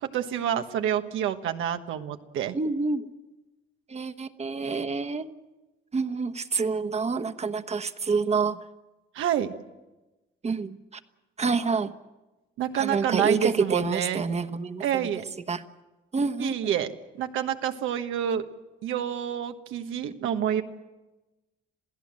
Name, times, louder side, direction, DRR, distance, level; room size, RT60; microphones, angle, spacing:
voice 1, 0.0-2.6 9.1-9.5 12.6-14.2 14.8-15.2 16.4-16.9 17.2-18.5 18.8-20.6, right 10 dB, 85° right, 7 dB, 1.4 m, -28 dB
voice 2, 2.5-3.1 3.9-5.3 5.9-8.7 10.4-11.0 11.4-11.9 12.7-15.1 15.5-15.6 16.1-16.7 20.2-20.4, right 4 dB, 35° right, 10 dB, 1.2 m, -28 dB
27.5 x 16.5 x 7.5 m, 1.1 s
cardioid pair, 90°, 20 cm